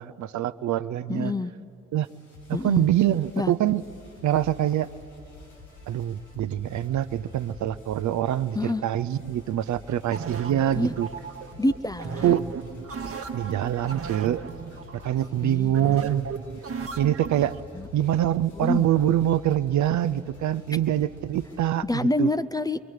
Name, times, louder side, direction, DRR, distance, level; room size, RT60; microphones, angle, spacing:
voice 1, 0.0-1.3 1.9-2.1 2.5-3.8 4.2-4.9 5.9-11.1 12.2-12.4 13.3-14.4 15.0-16.2 17.0-17.6 17.9-22.3, right 12 dB, 55° right, 13 dB, 0.6 m, -25 dB
voice 2, 1.1-1.5 2.5-2.9 3.4-3.5 8.5-8.8 10.7-10.9 11.6-12.4 15.4-16.1 17.7-17.9 18.6-18.9 21.9-22.8, left 2 dB, 10° left, 13 dB, 0.5 m, -27 dB
sound 1, 2.0-21.6, left 3 dB, 85° left, 7.1 m, -48 dB
sound 2, 10.1-17.6, right 5 dB, 40° right, 1.3 m, -36 dB
29.5 x 23.0 x 4.8 m, 2.6 s
hypercardioid pair, 40°, 34 cm